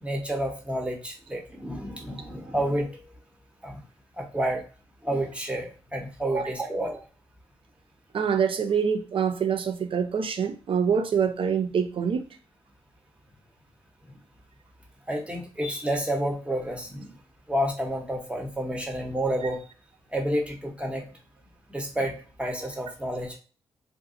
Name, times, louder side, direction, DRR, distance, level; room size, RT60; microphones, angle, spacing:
voice 1, 0.0-3.0 3.6-3.8 4.2-4.6 5.0-7.0 15.1-17.1 17.5-19.6 20.1-21.0 21.7-23.4, right 1 dB, 10° right, 1.2 m, -30 dB
voice 2, 8.1-12.3, right 7 dB, 60° right, 0.6 m, -25 dB
2.6 x 2.3 x 3.8 m
cardioid pair, 55°, 10 cm